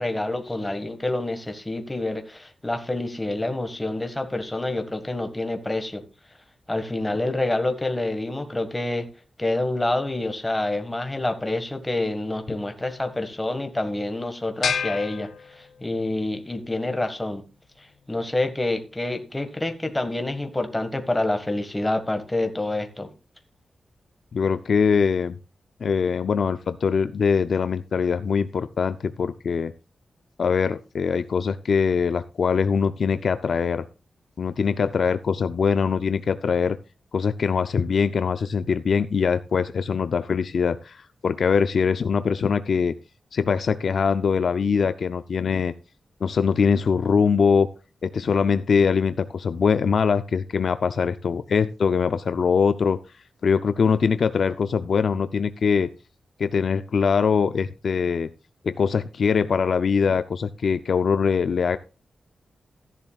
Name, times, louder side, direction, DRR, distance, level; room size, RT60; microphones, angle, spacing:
voice 1, 0.0-6.0 6.7-9.1 9.4-17.4 17.8-23.1, left 2 dB, 10° left, 6 dB, 1.6 m, -27 dB
sound 1, 14.6-16.1, left 6 dB, 85° left, 1.9 m, -29 dB
voice 2, 24.3-25.4 25.8-29.7 30.4-33.8 34.4-36.8 37.1-42.9 43.3-45.7 46.2-47.7 48.0-53.0 53.4-55.9 56.4-58.3 58.6-61.8, left 6 dB, 55° left, 11 dB, 0.4 m, -22 dB
14.0 x 11.0 x 2.4 m, 0.32 s
wide cardioid pair, 175°, 0 cm